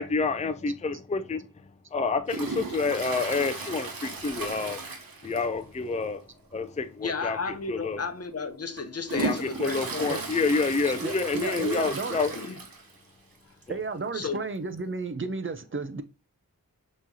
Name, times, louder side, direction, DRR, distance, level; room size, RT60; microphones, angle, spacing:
voice 1, 0.0-1.5 1.9-4.8 5.2-6.2 6.5-8.0 9.1-12.3, left 4 dB, 20° left, 0.5 m, -28 dB
Toilet flush, 2.3-5.7 6.0-6.1 6.5-6.6 7.5-7.6 8.1-13.0 13.4-13.5 13.6-13.7 14.8-14.9, right 3 dB, 75° right, 1.0 m, -36 dB
voice 2, 7.0-10.1 12.3-12.6 14.1-14.4, left 4 dB, 45° left, 0.8 m, -33 dB
voice 3, 10.8-12.2 13.7-16.0, right 4 dB, 35° right, 0.6 m, -33 dB
5.9 x 3.1 x 2.8 m
wide cardioid pair, 60°, 35 cm